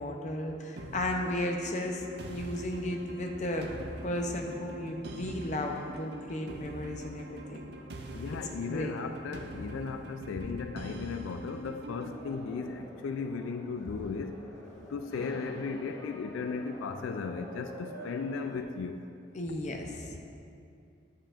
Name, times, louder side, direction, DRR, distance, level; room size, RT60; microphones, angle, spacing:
voice 1, 0.0-3.7 4.0-7.6 8.3-8.9 19.3-20.2, left 1 dB, 35° left, 2 dB, 0.6 m, -34 dB
sound 1, 0.8-12.2, right 1 dB, 55° right, 0.5 m, -44 dB
voice 2, 8.1-14.4 14.9-19.0, left 5 dB, 80° left, 7 dB, 0.3 m, -36 dB
sound 2, 11.9-18.6, equal, 20° left, 0.9 m, -47 dB
8.8 x 7.3 x 2.5 m, 2.5 s
head